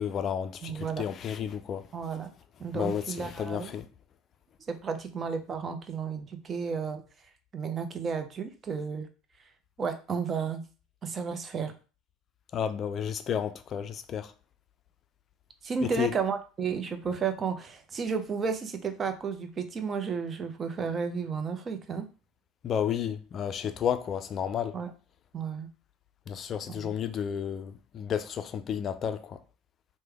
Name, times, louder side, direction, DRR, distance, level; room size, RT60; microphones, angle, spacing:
voice 1, 0.0-1.9 2.7-3.9 12.5-14.3 15.8-16.1 22.6-24.8 26.3-29.4, left 8 dB, 45° left, 0.3 m, -32 dB
voice 2, 0.6-1.0 1.9-2.3 2.6-3.7 4.7-7.0 7.5-9.1 9.8-10.6 11.0-11.7 15.6-22.1 24.7-24.9 25.3-25.7 26.7-26.9, right 5 dB, 35° right, 0.6 m, -32 dB
3.2 x 2.1 x 3.3 m
hypercardioid pair, 80°, 0 cm